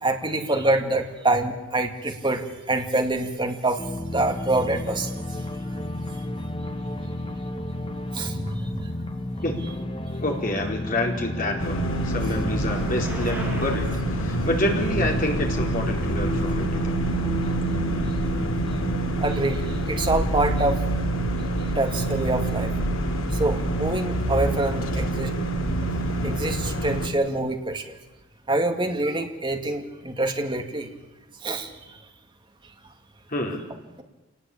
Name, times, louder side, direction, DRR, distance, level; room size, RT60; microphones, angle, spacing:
voice 1, 0.0-3.8 4.1-5.1 8.1-9.0 19.2-20.8 21.8-22.7 23.3-25.3 26.1-28.0 28.5-30.9 31.4-31.7, right 2 dB, 25° right, 4 dB, 2.3 m, -26 dB
sound 1, 3.8-20.3, left 1 dB, 25° left, 1.4 m, -32 dB
voice 2, 10.2-13.9 14.1-16.9 33.3-33.6, left 1 dB, 40° left, 1 dB, 4.3 m, -28 dB
Bicycle, 10.7-16.7, equal, 5° right, 6.1 m, -43 dB
sound 2, 11.6-27.1, right 1 dB, 75° left, 2.5 m, -27 dB
27.0 x 19.5 x 8.7 m, 1.1 s
head